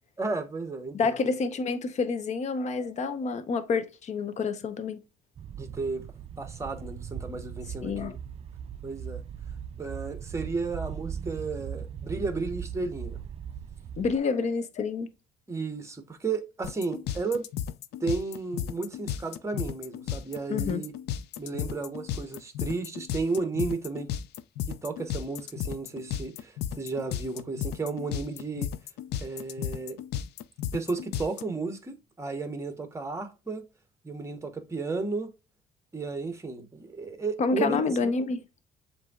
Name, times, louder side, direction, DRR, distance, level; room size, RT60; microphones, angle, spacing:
voice 1, 0.2-1.2 5.6-6.1 6.4-8.2 8.8-9.2 9.8-13.2 15.5-17.5 18.0-20.9 21.4-24.1 24.7-28.7 29.2-30.0 30.7-33.6 34.0-35.3 35.9-37.8, right 3 dB, 15° right, 1.0 m, -33 dB
voice 2, 0.9-5.0 7.8-8.1 14.0-15.1 20.5-20.8 37.4-38.4, left 4 dB, 45° left, 0.7 m, -28 dB
sound 1, 5.4-14.2, right 8 dB, 35° right, 0.4 m, -39 dB
sound 2, 16.6-31.4, left 9 dB, 75° left, 0.4 m, -34 dB
7.5 x 2.7 x 2.3 m
cardioid pair, 110°, 17 cm